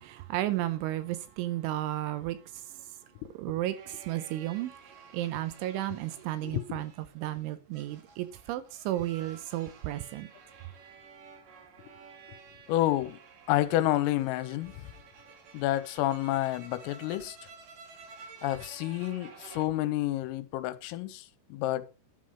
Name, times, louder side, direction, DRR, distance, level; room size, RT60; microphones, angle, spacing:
voice 1, 0.0-3.0 3.4-10.3, right 14 dB, 80° right, 2.9 m, -33 dB
sound 1, 2.2-19.7, right 5 dB, 55° right, 2.8 m, -53 dB
voice 2, 6.4-6.8 12.7-13.2 13.5-14.8 15.5-17.4 18.4-21.9, left 15 dB, 85° left, 3.4 m, -29 dB
11.5 x 7.8 x 5.0 m
omnidirectional pair, 6.0 m